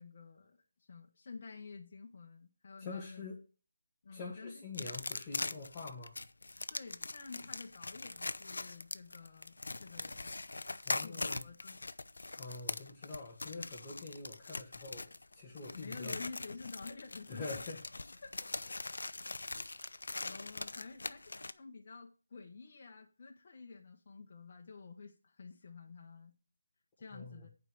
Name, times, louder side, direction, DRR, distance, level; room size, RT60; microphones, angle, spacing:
voice 1, 0.0-3.3 4.0-4.6 6.7-10.3 10.8-11.8 15.7-17.5 18.2-18.8 19.9-26.3 27.0-27.5, left 4 dB, 40° left, 1.3 m, -50 dB
voice 2, 2.8-3.4 4.1-6.1 10.8-11.5 12.3-16.2 17.3-17.8 18.1-18.2 27.1-27.5, left 3 dB, 15° left, 1.9 m, -45 dB
sound 1, 4.7-21.5, left 2 dB, 80° left, 0.6 m, -42 dB
8.4 x 5.0 x 7.0 m
figure-of-eight pair, 170°, 0 cm